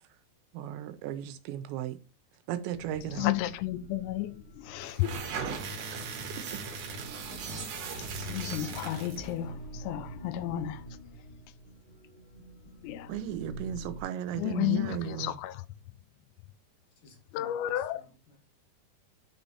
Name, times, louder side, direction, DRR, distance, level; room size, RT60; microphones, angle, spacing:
voice 1, 0.5-2.0 2.5-3.3 5.9-6.7 13.1-15.4, right 10 dB, 90° right, 3.0 m, -36 dB
sound 1, 2.7-14.0, right 1 dB, 30° left, 3.4 m, -47 dB
voice 2, 3.2-5.2 8.2-10.8 12.8-13.1 14.4-15.6 17.3-18.0, left 14 dB, 85° left, 2.8 m, -32 dB
sound 2, 4.9-9.3, right 4 dB, 60° right, 2.4 m, -38 dB
sound 3, 5.1-12.7, right 2 dB, 40° right, 1.6 m, -53 dB
voice 3, 17.0-18.4, left 3 dB, 55° left, 3.3 m, -55 dB
9.0 x 4.5 x 4.1 m
omnidirectional pair, 4.9 m